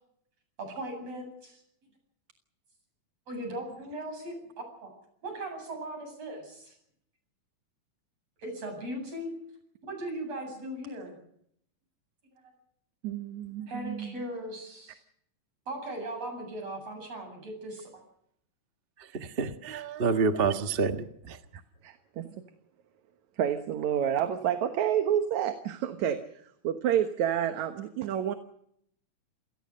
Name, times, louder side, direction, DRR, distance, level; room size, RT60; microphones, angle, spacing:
voice 1, 0.6-1.6 3.3-4.4 4.8-4.9 5.2-6.8 8.4-9.3 9.8-11.2 12.4-12.5 13.7-15.0 15.7-18.0, right 1 dB, 55° right, 9.3 m, -38 dB
voice 2, 13.0-14.1 21.5-22.3 23.4-26.2 26.6-28.3, right 9 dB, 75° right, 2.6 m, -29 dB
voice 3, 19.0-21.4, right 4 dB, 40° right, 0.8 m, -28 dB
28.0 x 18.5 x 6.5 m
omnidirectional pair, 3.4 m